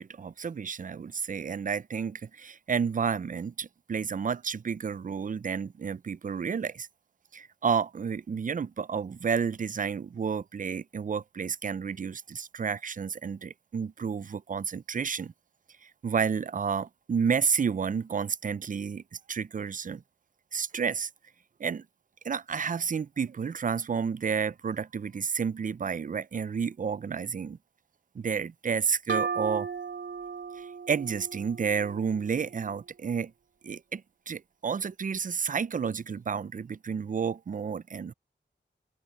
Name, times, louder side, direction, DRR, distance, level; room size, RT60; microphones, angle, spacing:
voice 1, 0.0-6.9 7.3-15.3 15.8-19.0 19.3-20.0 20.5-21.1 21.6-21.8 22.2-27.6 28.1-29.7 30.6-33.3 33.6-38.1, right 6 dB, 45° right, 0.4 m, -31 dB
sound 1, 29.1-32.6, right 5 dB, 75° right, 2.2 m, -35 dB
open air
wide cardioid pair, 75°, 20 cm